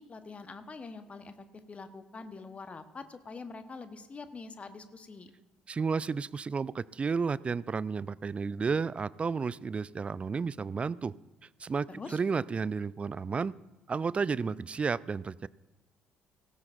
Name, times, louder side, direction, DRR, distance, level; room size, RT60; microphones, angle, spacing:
voice 1, 0.0-5.3 11.9-12.2, left 4 dB, 30° left, 9 dB, 1.1 m, -45 dB
voice 2, 5.7-11.1 11.6-13.5 13.9-15.5, right 5 dB, 25° right, 21 dB, 0.4 m, -32 dB
17.5 x 16.5 x 2.6 m, 1.1 s
figure-of-eight pair, 50°, 4 cm